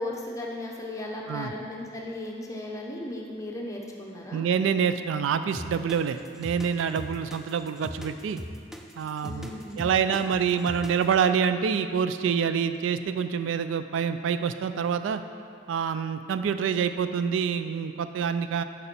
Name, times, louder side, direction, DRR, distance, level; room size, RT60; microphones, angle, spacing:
voice 1, 0.0-4.5 9.2-9.8, left 1 dB, 15° left, -2 dB, 0.7 m, -36 dB
voice 2, 4.3-8.4 8.9-9.5 9.8-15.2 15.7-18.6, right 7 dB, 85° right, 10 dB, 0.3 m, -26 dB
sound 1, 5.5-11.2, equal, ahead, 0.3 m, -39 dB
6.7 x 5.3 x 4.4 m, 2.3 s
head